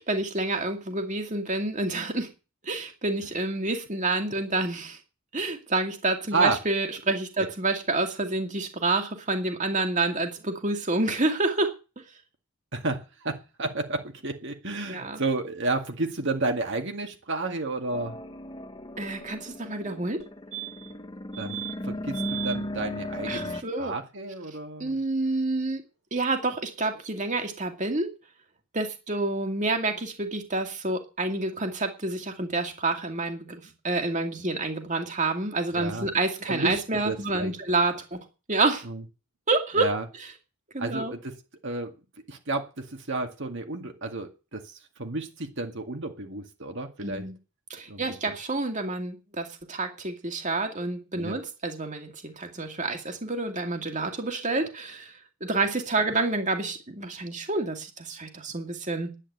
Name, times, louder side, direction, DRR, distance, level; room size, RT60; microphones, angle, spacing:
voice 1, 0.0-2.3 2.6-5.0 5.3-11.8 14.9-15.2 19.0-20.2 23.3-23.9 24.8-25.8 26.1-28.1 28.7-38.2 38.5-38.9 39.5-39.9 40.7-41.1 47.0-47.3 47.7-55.1 55.4-59.1, right 2 dB, 35° right, 5 dB, 2.3 m, -28 dB
voice 2, 12.7-18.2 21.4-25.0 35.7-36.1 36.5-37.5 38.8-39.0 39.7-40.0 40.8-41.3 41.6-41.9 42.3-47.2 47.9-48.3 51.1-51.4, right 2 dB, 55° right, 4 dB, 2.1 m, -31 dB
sound 1, 17.9-23.6, left 1 dB, 20° left, 0.9 m, -36 dB
sound 2, 20.2-20.3 20.5-21.0 21.3-21.7 22.1-22.6 25.0-25.1 25.2-25.3, right 16 dB, 80° right, 7.4 m, -37 dB
10.5 x 10.0 x 8.0 m, 0.31 s
head